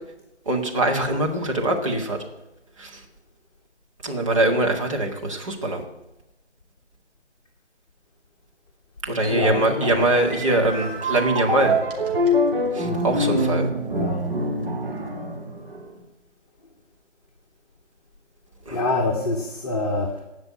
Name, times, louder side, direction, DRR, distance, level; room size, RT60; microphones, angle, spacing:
voice 1, 0.5-2.2 2.8-3.0 4.0-5.8 9.0-11.8 12.7-13.7 18.7-18.8, right 1 dB, 25° right, 1 dB, 1.8 m, -23 dB
sound 1, 9.2-15.9, equal, 50° right, 3.2 m, -25 dB
voice 2, 9.3-10.1 10.6-10.7 12.8-13.6 13.9-14.3 18.7-20.2, left 2 dB, 30° left, 1 dB, 1.6 m, -27 dB
17.0 x 6.0 x 9.7 m, 0.97 s
figure-of-eight pair, 160°, 36 cm